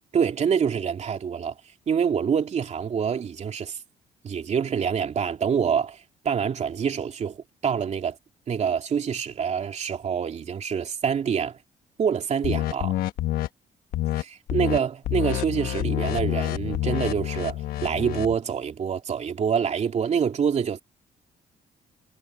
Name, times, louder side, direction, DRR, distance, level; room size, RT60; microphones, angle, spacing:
voice 1, 0.1-1.6 1.9-3.8 4.2-8.2 8.5-11.6 12.0-13.0 14.5-20.8, right 7 dB, 50° right, 2.9 m, -26 dB
sound 1, 12.4-13.5 13.9-14.2 14.5-14.8 15.0-18.3, left 14 dB, 85° left, 1.2 m, -27 dB
cardioid pair, 105°, 15 cm